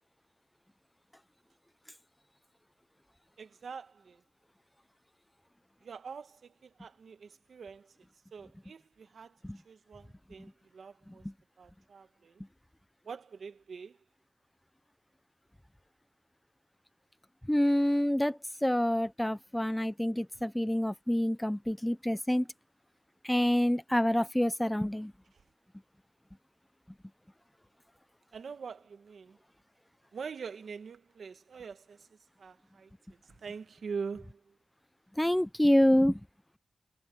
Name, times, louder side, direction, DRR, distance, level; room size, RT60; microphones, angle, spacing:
voice 1, 3.4-4.2 5.8-7.9 8.3-9.4 9.6-11.2 11.6-12.4 13.0-14.0 28.3-29.4 30.1-32.1 32.4-32.9 33.4-34.4, right 5 dB, 60° right, 1.5 m, -44 dB
voice 2, 17.5-22.5 23.2-25.1 35.2-36.2, equal, 5° left, 0.6 m, -27 dB
wide cardioid pair, 175°, 0 cm